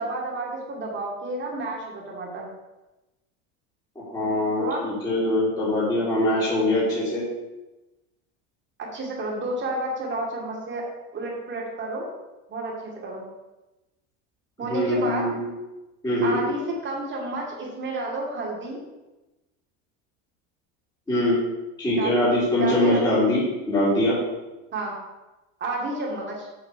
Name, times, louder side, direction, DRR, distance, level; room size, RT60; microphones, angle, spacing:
voice 1, 0.0-2.5 4.6-4.9 8.9-10.8 11.1-12.1 12.5-13.2 14.6-15.3 16.2-18.8 22.0-22.2 22.6-23.1 24.7-24.9 25.6-26.5, right 2 dB, 30° right, -2 dB, 2.5 m, -30 dB
voice 2, 3.9-7.2 14.7-15.5 16.0-16.4 21.1-21.4 21.8-24.2, left 1 dB, 10° left, -10 dB, 3.1 m, -23 dB
7.7 x 4.1 x 6.6 m, 1.1 s
supercardioid pair, 130°, 36 cm